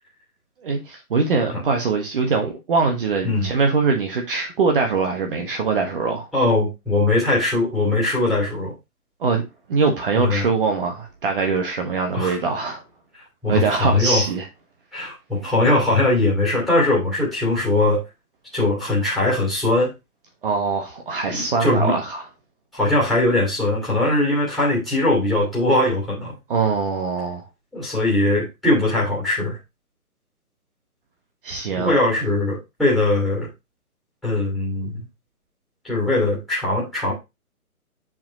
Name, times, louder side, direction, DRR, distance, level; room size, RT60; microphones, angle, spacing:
voice 1, 0.6-6.3 9.2-9.4 9.7-12.8 13.5-14.4 20.4-22.2 26.5-27.5 31.4-32.0, right 4 dB, 35° right, 1.3 m, -22 dB
voice 2, 6.3-8.7 10.1-10.5 12.1-12.4 13.4-14.2 14.9-18.0 18.5-19.9 21.3-22.0 22.7-26.3 27.7-29.6 31.8-33.5 34.2-35.1 35.8-37.1, left 2 dB, ahead, 2.6 m, -20 dB
7.3 x 5.1 x 2.9 m
figure-of-eight pair, 140°, 45 cm